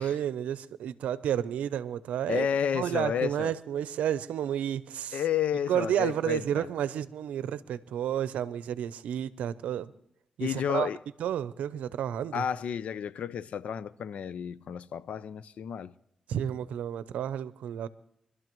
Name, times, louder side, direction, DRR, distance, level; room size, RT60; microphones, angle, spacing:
voice 1, 0.0-2.5 2.7-5.2 5.7-9.9 10.4-10.9 11.2-12.4 16.3-17.9, right 10 dB, 90° right, 0.6 m, -31 dB
voice 2, 2.3-3.5 5.1-6.6 10.4-11.0 12.3-15.9, left 8 dB, 75° left, 0.5 m, -31 dB
24.5 x 12.5 x 3.1 m
cardioid pair, 55°, 2 cm